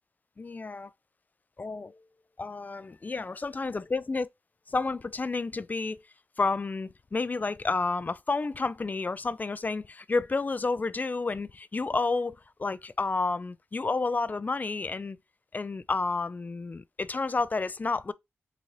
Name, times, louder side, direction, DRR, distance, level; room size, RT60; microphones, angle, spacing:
voice 1, 0.4-0.9 1.6-2.0 2.4-4.3 4.7-6.0 6.4-15.2 15.5-18.1, left 3 dB, 35° left, 0.3 m, -30 dB
3.8 x 2.5 x 3.1 m
supercardioid pair, 40°, 5 cm